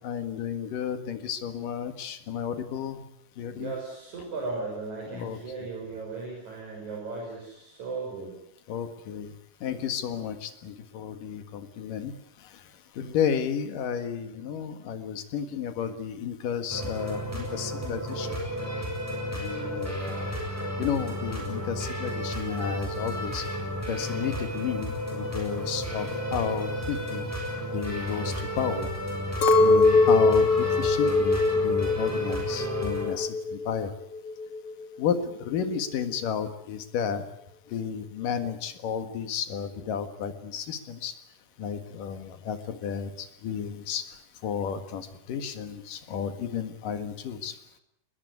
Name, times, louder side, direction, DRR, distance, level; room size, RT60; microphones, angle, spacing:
voice 1, 0.0-3.0 3.4-3.7 5.1-5.4 8.7-9.3 9.6-11.4 11.8-12.1 13.0-18.3 19.3-20.2 20.8-23.4 23.9-24.9 25.3-27.2 27.7-28.9 29.6-30.5 30.8-33.9 35.0-35.2 35.5-37.2 37.7-41.1 41.6-43.1 43.4-44.0 44.4-47.5, left 8 dB, 85° left, 9 dB, 3.4 m, -32 dB
voice 2, 3.5-8.3 17.5-17.6, right 3 dB, 60° right, -2 dB, 7.5 m, -36 dB
sound 1, 16.7-33.1, equal, 5° right, 7.2 m, -33 dB
Chink clink, 29.4-33.8 34.0-34.8, left 3 dB, 50° left, 2.9 m, -22 dB
21.5 x 21.0 x 9.5 m, 0.78 s
omnidirectional pair, 3.7 m